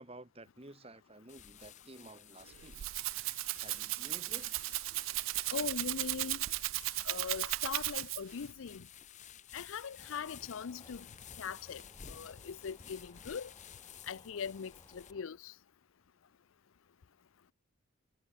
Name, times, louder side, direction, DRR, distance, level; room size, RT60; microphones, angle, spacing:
voice 1, 0.0-2.9 3.6-4.5, right 2 dB, 30° right, 2.2 m, -52 dB
sound 1, 1.3-15.1, left 9 dB, 35° left, 0.9 m, -54 dB
Rattle (instrument), 2.5-8.4, right 19 dB, 70° right, 0.3 m, -36 dB
voice 2, 5.5-6.4 7.0-8.8 9.5-11.0 11.4-11.8 12.1-13.5 14.1-15.5, left 6 dB, 75° left, 0.5 m, -41 dB
sound 2, 10.0-15.2, left 1 dB, 20° left, 5.8 m, -61 dB
head